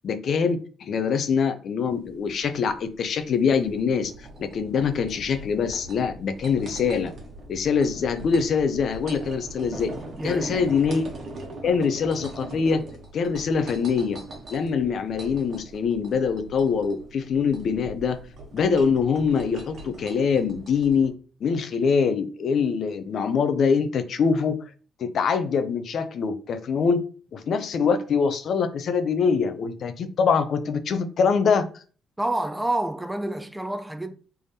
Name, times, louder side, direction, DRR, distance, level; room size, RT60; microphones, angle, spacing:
voice 1, 0.0-4.1 4.4-7.1 7.5-9.9 10.2-11.0 11.6-12.8 13.1-14.2 14.5-18.2 18.5-21.1 21.4-24.6 25.0-27.0 27.3-31.7, left 6 dB, 60° left, 0.4 m, -24 dB
sound 1, 1.9-21.1, right 2 dB, 55° right, 1.1 m, -41 dB
voice 2, 10.2-10.7 32.2-34.1, right 1 dB, 10° right, 0.3 m, -28 dB
3.4 x 3.4 x 2.7 m
cardioid pair, 90°, 0 cm